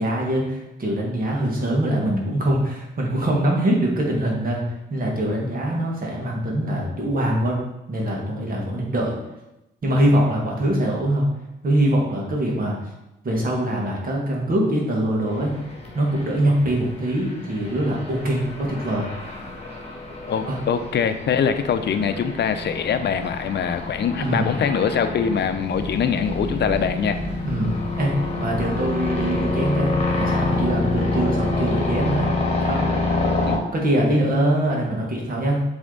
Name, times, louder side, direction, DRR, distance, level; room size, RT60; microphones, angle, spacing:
voice 1, 0.0-7.6 7.9-9.2 9.8-11.3 11.6-12.8 13.2-15.5 15.9-19.1 20.4-20.6 24.2-24.5 27.4-32.3 32.7-32.8 33.7-35.6, right 1 dB, 45° right, -2 dB, 1.9 m, -23 dB
sound 1, 15.3-33.6, left 2 dB, 30° left, 1.7 m, -27 dB
voice 2, 20.3-27.2 33.5-33.6, left 7 dB, 60° left, 9 dB, 0.6 m, -23 dB
sound 2, 25.7-31.2, right 2 dB, 65° right, 1.0 m, -36 dB
7.3 x 3.5 x 4.0 m, 0.92 s
cardioid pair, 85°, 20 cm